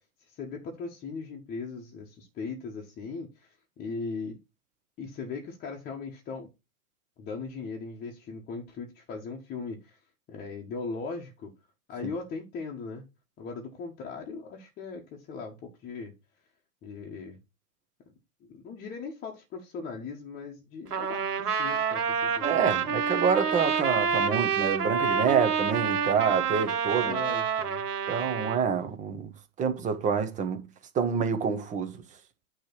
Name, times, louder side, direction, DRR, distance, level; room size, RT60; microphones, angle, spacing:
voice 1, 0.3-4.4 5.0-6.5 7.2-10.0 10.3-11.5 11.9-13.0 13.4-16.1 16.8-17.4 18.5-22.9 27.0-27.8, left 4 dB, 20° left, 1.3 m, -39 dB
Trumpet, 20.9-28.6, right 6 dB, 90° right, 1.4 m, -28 dB
voice 2, 22.4-27.2 28.1-29.3 29.6-30.7 30.9-32.0, right 6 dB, 15° right, 1.2 m, -27 dB
9.2 x 3.4 x 5.9 m
hypercardioid pair, 135°, 45 cm